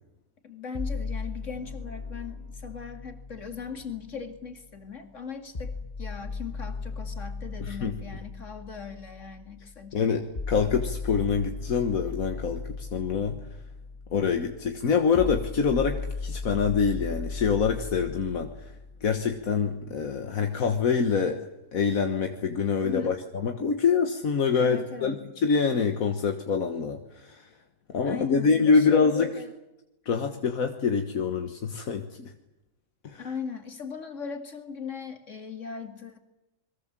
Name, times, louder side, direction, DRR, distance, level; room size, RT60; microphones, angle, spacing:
voice 1, 0.4-10.1 22.8-23.2 24.6-25.3 28.0-29.5 33.2-36.2, left 6 dB, 60° left, 6 dB, 2.8 m, -39 dB
sound 1, 0.7-4.7 5.5-19.6, left 4 dB, 30° left, 1.2 m, -37 dB
voice 2, 7.6-7.9 9.9-13.4 14.1-18.7 19.0-21.4 21.7-25.2 25.4-27.5 27.9-29.3 30.1-32.3 33.0-33.3, left 5 dB, 80° left, 5 dB, 1.8 m, -25 dB
29.0 x 22.0 x 7.5 m, 0.95 s
omnidirectional pair, 1.4 m